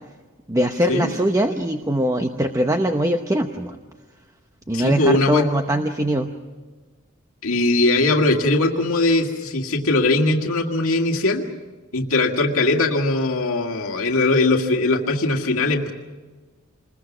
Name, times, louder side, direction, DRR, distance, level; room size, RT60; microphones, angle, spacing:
voice 1, 0.5-3.8 4.7-6.3, right 1 dB, 15° right, 5 dB, 0.8 m, -22 dB
voice 2, 4.7-5.5 7.4-11.5 11.9-15.9, left 2 dB, 75° left, 2 dB, 1.9 m, -20 dB
27.5 x 21.0 x 6.2 m, 1.3 s
head